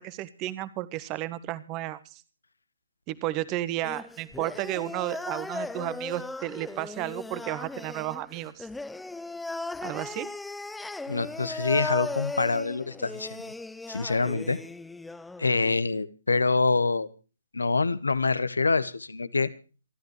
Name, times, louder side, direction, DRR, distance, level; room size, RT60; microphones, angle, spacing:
voice 1, 0.0-2.2 3.1-8.7 9.8-10.3, right 15 dB, 25° right, 16 dB, 1.5 m, -33 dB
sound 1, 3.8-15.8, left 2 dB, 5° left, 0.7 m, -37 dB
voice 2, 11.1-13.5 13.9-14.6 15.4-17.1 17.5-19.5, left 3 dB, 75° left, 15 dB, 1.5 m, -26 dB
27.5 x 13.5 x 3.2 m, 0.36 s
figure-of-eight pair, 130°, 0 cm